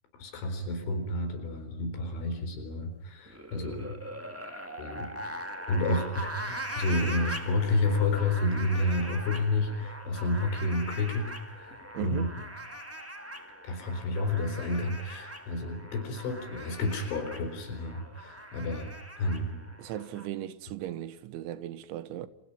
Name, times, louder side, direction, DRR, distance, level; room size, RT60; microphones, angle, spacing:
voice 1, 0.2-4.0 4.8-5.1 5.7-12.4 13.6-18.9 19.2-19.6, left 2 dB, 75° left, 6.6 m, -30 dB
sound 1, 3.2-20.3, right 1 dB, 15° right, 0.5 m, -41 dB
voice 2, 11.9-12.3 19.8-22.3, right 12 dB, 80° right, 3.6 m, -37 dB
28.5 x 28.5 x 5.6 m
omnidirectional pair, 5.4 m